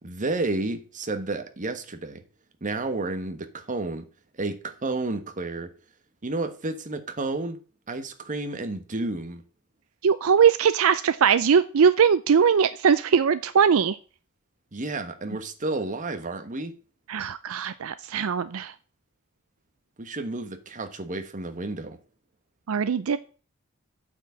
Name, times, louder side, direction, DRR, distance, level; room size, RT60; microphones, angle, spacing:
voice 1, 0.0-2.2 2.6-4.1 4.4-5.7 6.2-7.6 7.9-9.4 14.7-16.7 20.0-22.0, right 2 dB, 35° right, 1.2 m, -31 dB
voice 2, 10.0-14.0 17.1-18.7 22.7-23.2, right 7 dB, 70° right, 0.5 m, -21 dB
8.8 x 4.8 x 7.4 m
head